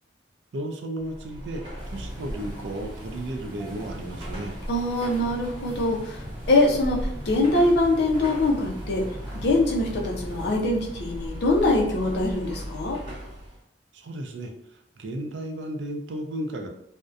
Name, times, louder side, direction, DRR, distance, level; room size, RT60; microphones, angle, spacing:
voice 1, 0.5-1.6 1.9-4.6 13.9-16.7, right 1 dB, 80° right, 4 dB, 0.4 m, -34 dB
Car passing by / Traffic noise roadway noise / Engine, 1.0-13.6, equal, 25° right, 0.9 m, -38 dB
sound 1, 1.8-10.6, equal, ahead, 1.3 m, -41 dB
voice 2, 4.7-9.1 9.3-13.0, left 2 dB, 65° left, 0 dB, 0.5 m, -23 dB
2.6 x 2.1 x 2.4 m, 0.74 s
head